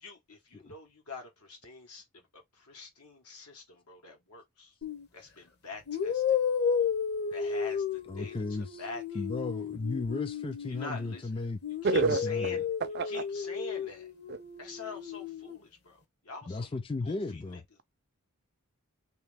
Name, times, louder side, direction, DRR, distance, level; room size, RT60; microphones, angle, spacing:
voice 1, 0.0-4.7 5.1-6.4 7.3-9.3 10.6-11.3 11.8-12.7 13.0-14.1 14.6-16.7 17.0-17.8, left 3 dB, 90° left, 1.6 m, -45 dB
sound 1, 4.8-5.1 5.9-11.2 11.6-15.6, left 7 dB, 45° left, 0.8 m, -33 dB
voice 2, 8.1-8.8 9.1-11.6 12.0-12.6 16.5-17.6, left 3 dB, 25° left, 0.3 m, -35 dB
voice 3, 11.8-12.2 12.9-13.2 14.3-14.4, right 3 dB, 45° right, 0.4 m, -27 dB
3.2 x 3.0 x 3.5 m
head